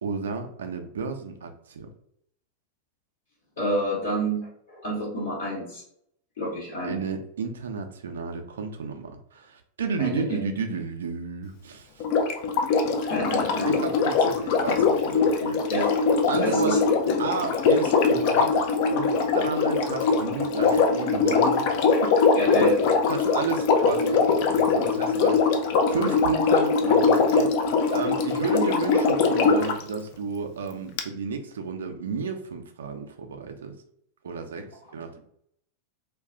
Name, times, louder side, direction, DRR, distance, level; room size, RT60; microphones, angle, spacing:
voice 1, 0.0-1.9 6.8-12.0 13.7-15.9 16.3-16.8 17.2-18.5 18.9-21.7 22.0-22.2 22.5-22.6 23.1-33.8 34.2-35.2, right 4 dB, 65° right, 5 dB, 0.4 m, -32 dB
voice 2, 3.6-5.8 6.4-7.0 10.0-10.2 13.0-13.9 15.7-15.9 16.4-16.8 17.1-17.2 22.3-22.8, equal, 60° left, -7 dB, 0.9 m, -28 dB
Sink (filling or washing), 12.0-29.8 31.0-31.1, left 5 dB, 45° left, 0.4 m, -22 dB
2.3 x 2.2 x 3.6 m, 0.70 s
figure-of-eight pair, 90°, 0 cm